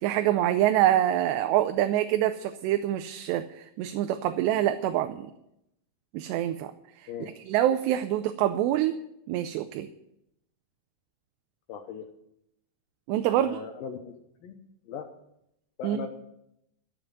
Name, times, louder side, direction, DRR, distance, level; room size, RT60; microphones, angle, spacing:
voice 1, 0.0-5.3 6.1-6.7 7.0-7.1 7.5-9.0 9.3-9.9 13.1-13.6 15.8-16.1, right 12 dB, 85° right, 9 dB, 2.8 m, -25 dB
voice 2, 11.7-12.1 13.3-14.1 14.4-14.6 14.9-15.1 15.8-16.1, left 7 dB, 75° left, 2 dB, 2.3 m, -38 dB
13.5 x 7.2 x 9.2 m, 0.81 s
omnidirectional pair, 4.9 m